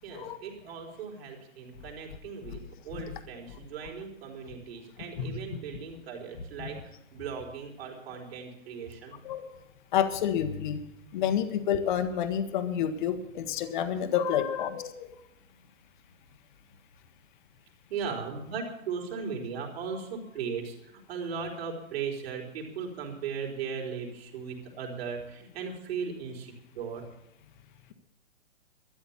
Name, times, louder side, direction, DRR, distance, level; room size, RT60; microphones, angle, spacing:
voice 1, 0.0-9.2 17.9-27.0, right 6 dB, 45° right, 0 dB, 4.0 m, -37 dB
voice 2, 9.9-10.8 11.1-15.1, left 9 dB, 35° left, 9 dB, 1.2 m, -29 dB
13.0 x 10.5 x 7.3 m, 0.82 s
hypercardioid pair, 145°, 40 cm